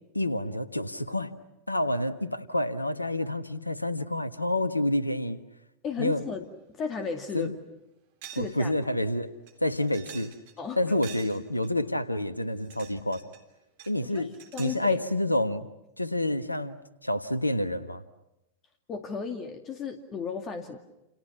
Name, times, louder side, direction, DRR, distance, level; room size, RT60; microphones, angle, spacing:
voice 1, 0.1-1.3 1.7-5.4 6.0-6.3 7.3-7.6 8.3-9.3 9.6-10.3 10.8-13.2 13.9-14.3 14.6-15.7 16.0-18.0, left 1 dB, 85° left, 13 dB, 1.4 m, -28 dB
voice 2, 5.8-6.5 6.7-7.5 8.3-8.7 10.6-10.8 14.0-14.3 14.5-15.0 18.9-20.8, left 5 dB, 30° left, 6 dB, 2.3 m, -34 dB
sound 1, 6.9-7.0 7.4-7.5 8.2-8.6 8.8-8.9 9.5-10.6 11.0-11.7 12.4-13.4 13.8-14.9, right 10 dB, 50° right, 3.5 m, -47 dB
29.5 x 29.0 x 6.0 m, 0.92 s
figure-of-eight pair, 90°, 0 cm